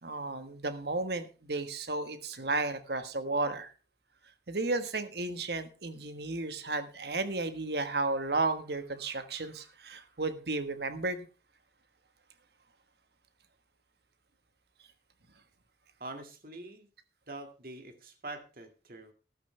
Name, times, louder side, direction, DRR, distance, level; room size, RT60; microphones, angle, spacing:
voice 1, 0.0-3.7 4.5-11.3, right 3 dB, 70° right, 10 dB, 1.4 m, -33 dB
voice 2, 16.0-16.9 17.3-19.1, right 2 dB, 55° right, 6 dB, 2.1 m, -44 dB
13.5 x 11.5 x 3.3 m, 0.34 s
head